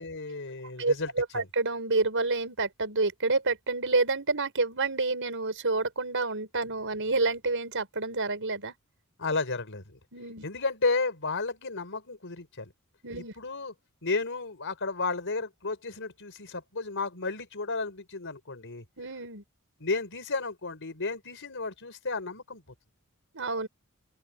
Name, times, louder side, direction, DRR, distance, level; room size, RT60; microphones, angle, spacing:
voice 1, 0.0-1.4 9.2-10.0 10.4-12.7 13.4-13.7 14.0-18.8 19.8-22.6, left 3 dB, 60° left, 4.8 m, -33 dB
voice 2, 0.8-8.7 10.1-10.4 13.0-13.3 19.0-19.4 23.3-23.7, right 3 dB, 60° right, 6.2 m, -28 dB
open air
head